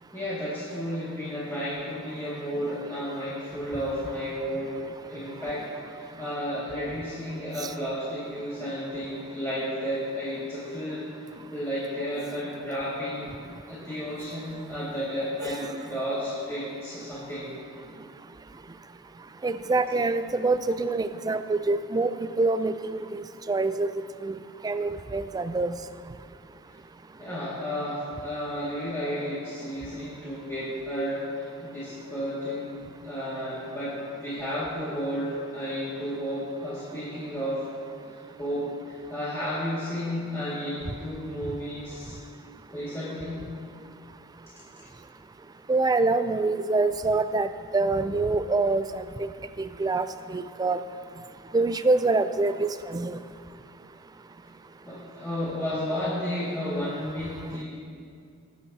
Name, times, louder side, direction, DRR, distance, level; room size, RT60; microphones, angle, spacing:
voice 1, 0.1-11.1 11.5-13.3 13.7-17.5 27.2-37.9 38.4-42.2 42.7-43.4 54.9-57.6, equal, 15° left, -11 dB, 2.1 m, -32 dB
voice 2, 15.4-15.8 19.4-23.9 24.2-24.4 24.6-25.7 45.7-49.3 49.6-50.8 51.5-53.2, right 3 dB, 20° right, 11 dB, 0.3 m, -26 dB
19.5 x 8.4 x 2.8 m, 2.4 s
head